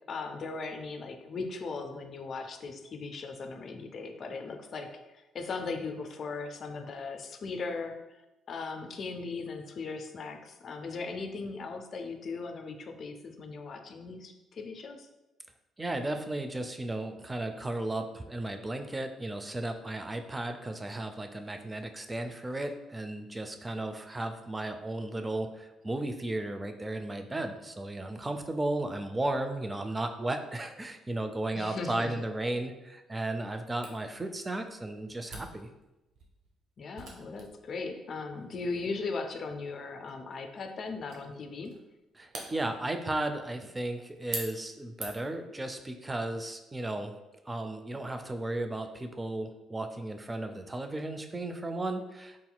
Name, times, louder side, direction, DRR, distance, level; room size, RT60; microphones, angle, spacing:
voice 1, 0.1-8.2 8.5-15.1 31.5-32.2 36.8-41.8, left 4 dB, 55° left, 6 dB, 0.4 m, -38 dB
voice 2, 15.8-35.7 42.2-47.1 47.5-52.5, right 2 dB, 20° right, 6 dB, 0.4 m, -35 dB
Camera, 33.8-45.4, right 3 dB, 60° right, 0.7 m, -47 dB
3.8 x 2.8 x 2.2 m, 0.99 s
hypercardioid pair, 50°, 0 cm